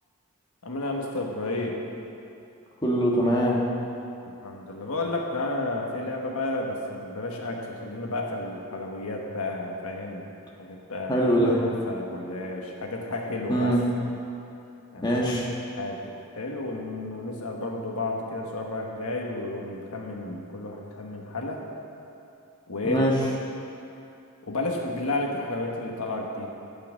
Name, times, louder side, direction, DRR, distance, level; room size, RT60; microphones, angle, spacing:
voice 1, 0.6-1.8 4.4-10.3 10.6-11.3 11.5-13.7 14.9-15.1 15.7-21.6 22.7-23.0 24.4-26.5, left 2 dB, 80° left, 0 dB, 1.3 m, -32 dB
voice 2, 2.8-3.6 11.1-11.6 13.5-13.8 15.0-15.5 22.8-23.1, equal, 20° left, -4 dB, 1.4 m, -22 dB
13.0 x 5.8 x 7.4 m, 2.8 s
head